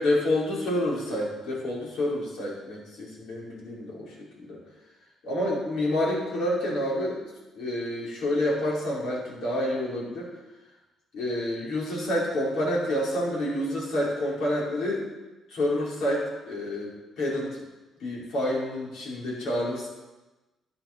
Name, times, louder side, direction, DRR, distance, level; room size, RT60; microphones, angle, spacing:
voice 1, 0.0-4.6 5.2-7.2 7.5-10.3 11.1-15.1 15.5-17.6 18.0-19.9, left 1 dB, 75° left, -4 dB, 4.9 m, -28 dB
11.5 x 11.0 x 6.0 m, 1.1 s
cardioid pair, 115°, 0 cm